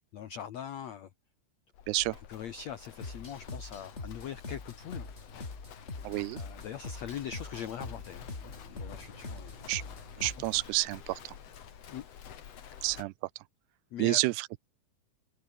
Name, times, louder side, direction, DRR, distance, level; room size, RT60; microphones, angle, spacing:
voice 1, 0.1-1.1 2.3-5.1 6.3-9.5 11.9-12.0 12.7-12.8 13.9-14.2, left 9 dB, 80° left, 1.5 m, -42 dB
Livestock farm animals working animals, 1.7-13.0, left 9 dB, 50° left, 2.1 m, -50 dB
sound 1, 3.0-10.7, left 3 dB, 20° left, 2.8 m, -44 dB
voice 2, 6.0-6.4 9.7-9.8 10.2-11.3 12.8-13.1 14.0-14.5, right 21 dB, 80° right, 2.6 m, -29 dB
sound 2, 7.9-13.1, right 3 dB, 40° right, 9.3 m, -61 dB
omnidirectional pair, 4.9 m